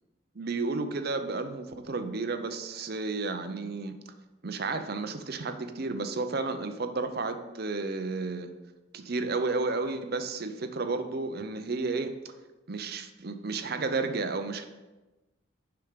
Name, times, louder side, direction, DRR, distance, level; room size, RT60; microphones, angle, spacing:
voice 1, 0.4-3.9 4.4-8.5 8.9-12.3 12.7-14.7, right 3 dB, 50° right, 8 dB, 0.6 m, -32 dB
6.8 x 5.8 x 5.1 m, 1.1 s
head